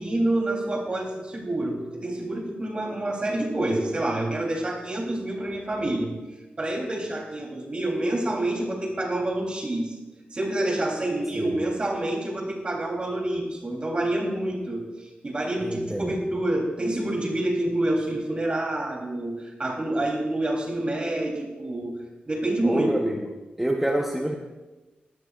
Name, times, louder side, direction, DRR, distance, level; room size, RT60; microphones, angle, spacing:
voice 1, 0.0-6.1 6.6-10.0 10.3-22.0 22.3-22.9, right 1 dB, 35° right, 0 dB, 3.4 m, -27 dB
voice 2, 15.6-16.1 22.6-23.2 23.6-24.3, right 1 dB, 5° right, 0 dB, 1.0 m, -26 dB
19.0 x 13.5 x 2.5 m, 1.1 s
wide cardioid pair, 115°, 3 cm